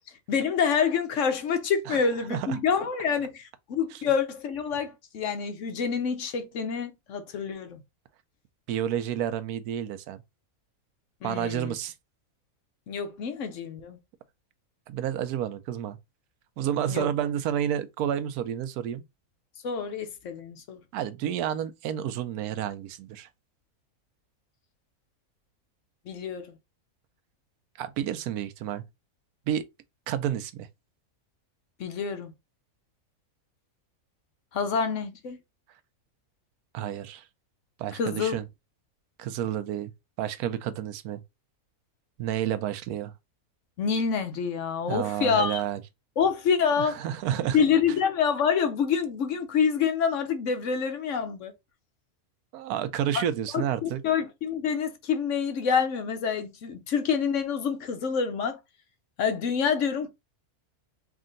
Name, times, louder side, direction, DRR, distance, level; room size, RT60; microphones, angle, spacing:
voice 1, 0.3-7.8 11.2-11.7 12.9-14.0 16.9-17.1 19.6-20.8 26.1-26.5 31.8-32.3 34.5-35.4 37.9-38.4 43.8-45.6 46.2-47.0 47.5-51.5 53.1-53.2 53.5-58.6 59.2-60.1, left 6 dB, 65° left, 0.9 m, -27 dB
voice 2, 8.7-10.2 11.2-11.9 14.9-16.0 16.6-19.0 20.9-23.3 27.8-28.8 29.5-29.7 30.1-30.7 36.7-37.2 37.8-38.4 39.2-39.9 40.2-41.2 42.2-43.1 44.9-45.8 46.8-47.6 52.5-54.0, right 10 dB, 85° right, 1.1 m, -30 dB
3.6 x 2.5 x 3.8 m
omnidirectional pair, 1.6 m